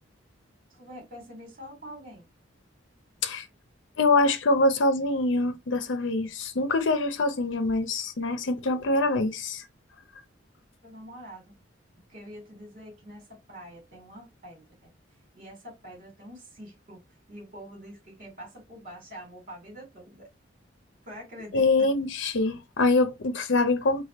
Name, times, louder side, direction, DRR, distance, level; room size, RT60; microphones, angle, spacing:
voice 1, 0.7-2.3 10.8-11.5 12.1-14.9 15.3-17.0 17.3-20.3 21.0-21.9, equal, 45° right, 2.8 m, -45 dB
voice 2, 4.0-9.6 21.5-24.0, left 2 dB, 75° left, 0.6 m, -24 dB
4.9 x 2.3 x 4.1 m
head